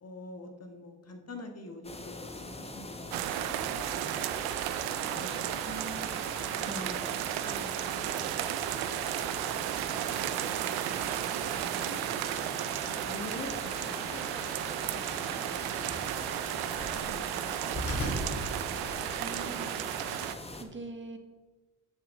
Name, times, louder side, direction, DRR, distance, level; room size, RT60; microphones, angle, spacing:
voice 1, 0.0-4.7 5.1-6.0 6.6-7.1 7.4-8.9 9.7-14.2 14.9-15.3 16.9-18.0 18.7-19.0, left 2 dB, 45° left, 4 dB, 1.5 m, -48 dB
sound 1, 1.8-20.6, left 2 dB, 15° left, 1.2 m, -43 dB
sound 2, 3.1-20.3, right 12 dB, 90° right, 0.5 m, -34 dB
voice 2, 5.6-6.1 6.7-7.2 19.2-19.7 20.5-21.2, right 3 dB, 30° right, 5 dB, 1.4 m, -42 dB
sound 3, 10.5-19.2, equal, 70° left, 2.7 m, -42 dB
8.4 x 6.9 x 3.7 m, 1.3 s
supercardioid pair, 55°, 36 cm